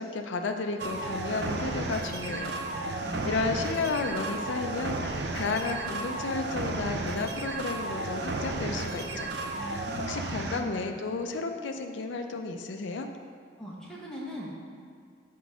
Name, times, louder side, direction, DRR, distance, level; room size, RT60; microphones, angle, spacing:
voice 1, 0.0-2.6 3.3-13.1, left 3 dB, 70° left, 5 dB, 0.5 m, -33 dB
sound 1, 0.8-10.6, right 2 dB, 60° right, 0.5 m, -33 dB
voice 2, 2.7-3.5 9.6-10.1 10.4-10.9 13.6-14.7, equal, 5° left, -6 dB, 1.2 m, -40 dB
6.1 x 4.6 x 6.2 m, 2.1 s
head